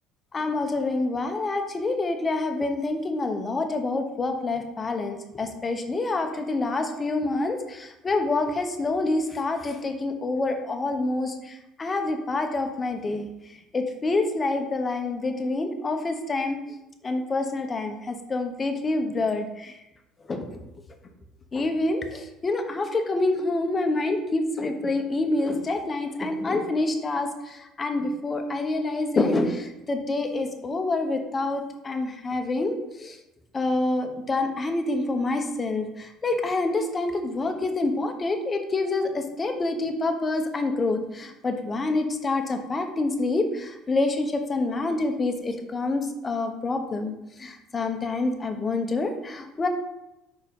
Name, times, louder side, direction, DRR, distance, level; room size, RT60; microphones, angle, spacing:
voice 1, 0.3-13.3 13.7-16.6 17.0-19.7 20.3-20.5 21.5-33.2 33.5-47.1 47.4-49.7, left 2 dB, 25° left, 6 dB, 0.9 m, -27 dB
5.0 x 4.3 x 5.3 m, 0.91 s
supercardioid pair, 95°, 0 cm